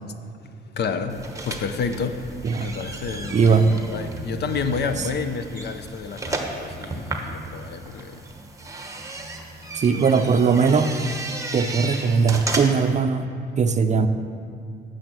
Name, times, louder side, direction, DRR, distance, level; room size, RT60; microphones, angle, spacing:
voice 1, 0.4-2.3 2.6-8.3 9.9-10.3, left 5 dB, 55° left, 9 dB, 0.6 m, -30 dB
sound 1, 1.1-13.0, right 2 dB, 15° right, 1.0 m, -34 dB
voice 2, 3.3-3.8 9.7-11.0 11.5-13.3 13.6-14.1, right 5 dB, 35° right, 8 dB, 0.5 m, -19 dB
8.6 x 6.4 x 6.1 m, 2.2 s
cardioid pair, 90°, 20 cm